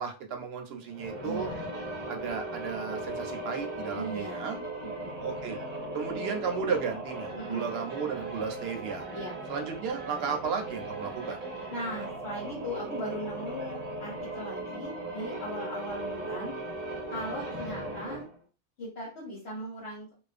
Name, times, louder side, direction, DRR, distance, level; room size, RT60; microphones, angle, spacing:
voice 1, 0.0-1.5 2.1-4.6 5.2-5.6 5.9-9.1 9.5-11.4, right 6 dB, 65° right, 4 dB, 0.8 m, -34 dB
sound 1, 0.9-18.4, right 2 dB, 40° right, 0.8 m, -38 dB
voice 2, 1.2-1.6 3.9-4.6 4.8-5.1 7.3-7.7 9.1-9.4 11.7-16.5 17.1-18.2 18.8-20.1, equal, 70° left, -6 dB, 1.1 m, -38 dB
2.4 x 2.2 x 2.4 m, 0.34 s
omnidirectional pair, 1.2 m